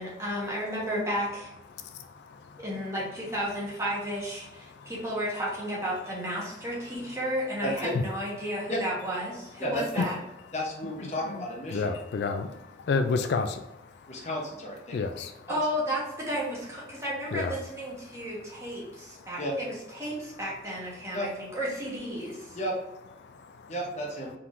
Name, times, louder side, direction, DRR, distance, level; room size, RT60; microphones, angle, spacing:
voice 1, 0.0-1.5 2.6-10.2 15.5-22.6, equal, 15° right, -5 dB, 1.2 m, -33 dB
voice 2, 1.7-2.7 4.6-4.9 7.0-7.1 7.9-8.0 11.3-11.4 11.7-14.3 14.9-15.5 17.3-17.6 18.0-18.3 18.8-19.3 22.4-22.6 23.2-23.7, left 4 dB, 70° left, 7 dB, 0.3 m, -32 dB
voice 3, 9.6-10.0 10.5-11.9 14.1-15.0 19.4-19.5 21.1-21.3 22.5-22.8 23.7-24.3, equal, 40° left, -1 dB, 0.8 m, -32 dB
4.4 x 3.7 x 2.5 m, 0.92 s
head